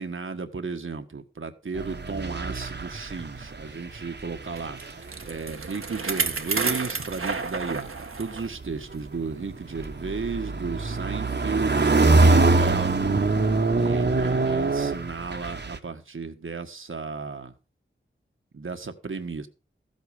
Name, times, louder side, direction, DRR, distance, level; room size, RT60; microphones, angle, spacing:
voice 1, 0.0-13.0 13.7-17.5 18.5-19.5, right 4 dB, 75° right, 1.5 m, -34 dB
sound 1, 1.7-3.7 4.0-5.2 6.3-6.5 8.6-15.8, right 3 dB, 55° right, 1.3 m, -23 dB
Bicycle, 4.6-8.5 8.9-9.0 9.8-9.9, right 4 dB, 90° right, 1.5 m, -31 dB
14.5 x 8.2 x 5.0 m
wide cardioid pair, 80°, 21 cm